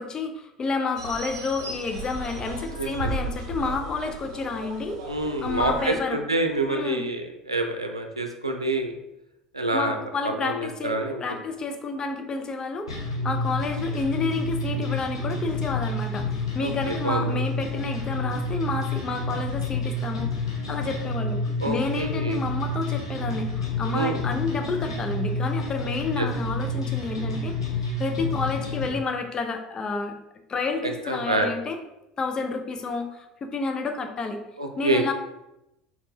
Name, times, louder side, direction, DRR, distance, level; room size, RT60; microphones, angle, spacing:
voice 1, 0.0-5.0 5.4-6.2 6.7-7.1 9.7-27.7 28.0-30.2 30.5-31.8 32.2-34.4 34.8-35.1, left 4 dB, 25° left, 5 dB, 0.7 m, -30 dB
sound 1, 1.0-6.0, right 2 dB, 65° right, 0.8 m, -35 dB
voice 2, 5.1-9.0 9.5-10.0 10.2-11.2 16.6-17.4 21.6-22.4 23.9-24.2 26.2-26.3 30.8-31.5 34.6-35.1, right 2 dB, 85° right, 4 dB, 0.5 m, -27 dB
sound 2, 12.9-28.9, left 2 dB, 75° left, 1.1 m, -29 dB
4.4 x 4.1 x 2.9 m, 0.88 s
figure-of-eight pair, 65°, 3 cm